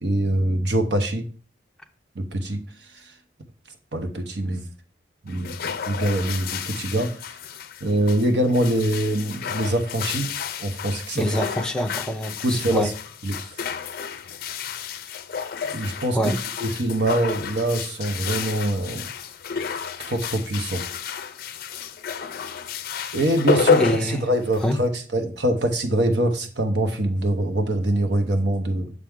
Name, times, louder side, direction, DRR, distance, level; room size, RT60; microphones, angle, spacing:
voice 1, 0.0-1.2 2.1-2.6 3.0-3.1 3.9-4.7 5.2-7.1 7.8-10.3 10.6-11.3 12.4-12.9 13.2-13.4 15.7-16.3 16.6-19.1 20.0-20.8 23.1-28.9, right 1 dB, 65° right, 0.9 m, -24 dB
sound 1, 5.3-24.9, left 6 dB, 50° left, 0.4 m, -30 dB
voice 2, 11.1-12.9 16.1-16.4 23.8-24.3 24.6-24.8, equal, 5° left, 0.6 m, -25 dB
6.6 x 4.5 x 3.7 m
head